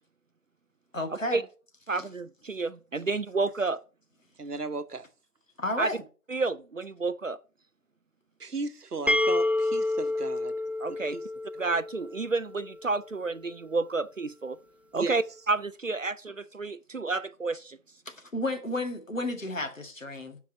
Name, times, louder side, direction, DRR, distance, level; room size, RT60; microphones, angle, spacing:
voice 1, 0.9-1.4 1.9-2.0 5.6-6.0 18.1-20.4, left 1 dB, 55° left, 1.9 m, -32 dB
voice 2, 1.9-3.8 5.8-5.9 6.3-7.4 10.8-11.2 11.6-14.6 14.9-17.8, right 3 dB, 60° right, 0.5 m, -30 dB
voice 3, 4.4-5.1 8.4-10.5 10.9-11.2 14.9-15.2, right 3 dB, 85° right, 1.1 m, -35 dB
sound 1, 9.1-12.8, left 2 dB, 5° right, 0.3 m, -29 dB
7.7 x 5.0 x 6.7 m
figure-of-eight pair, 175°, 45 cm